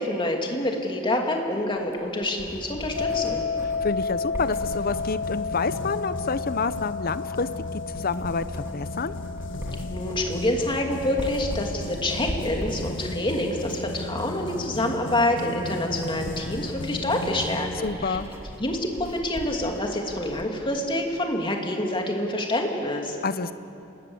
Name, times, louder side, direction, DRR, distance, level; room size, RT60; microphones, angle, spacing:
voice 1, 0.0-3.4 9.9-18.2 18.6-23.2, left 1 dB, 25° left, 1 dB, 2.7 m, -27 dB
Writing, 1.9-20.5, equal, 10° right, 2.5 m, -40 dB
sound 1, 3.0-13.9, left 5 dB, 75° left, 2.7 m, -33 dB
voice 2, 3.8-7.5 7.7-9.1 17.8-18.3 23.2-23.5, left 4 dB, 45° left, 13 dB, 0.8 m, -28 dB
sound 2, 4.4-18.3, left 1 dB, 60° left, 1.6 m, -36 dB
28.0 x 20.0 x 8.0 m, 2.8 s
head